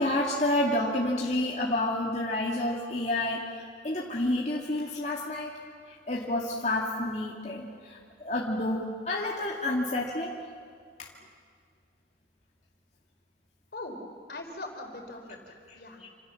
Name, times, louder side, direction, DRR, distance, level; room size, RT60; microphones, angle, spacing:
voice 1, 0.0-5.5 5.9-10.3 15.7-16.1, left 1 dB, 40° left, -3 dB, 2.3 m, -29 dB
voice 2, 14.3-16.0, left 2 dB, 60° left, 3 dB, 4.3 m, -41 dB
28.0 x 27.5 x 7.2 m, 2.1 s
head